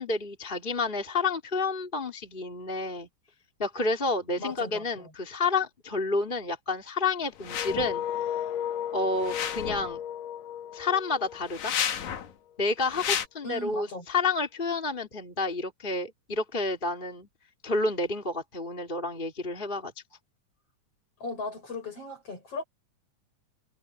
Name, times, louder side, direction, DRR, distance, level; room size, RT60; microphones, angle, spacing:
voice 1, 0.0-3.1 3.6-8.1 8.9-10.0 10.7-11.7 12.6-17.3 17.6-19.9, left 3 dB, 15° left, 3.0 m, -30 dB
voice 2, 4.4-5.1 13.4-14.1 21.2-22.6, left 2 dB, 45° left, 8.8 m, -37 dB
sound 1, 7.4-7.9 9.1-9.9 11.4-12.3 12.9-13.3, left 8 dB, 65° left, 3.0 m, -31 dB
sound 2, 7.5-12.3, left 10 dB, 85° left, 2.4 m, -35 dB
omnidirectional pair, 3.8 m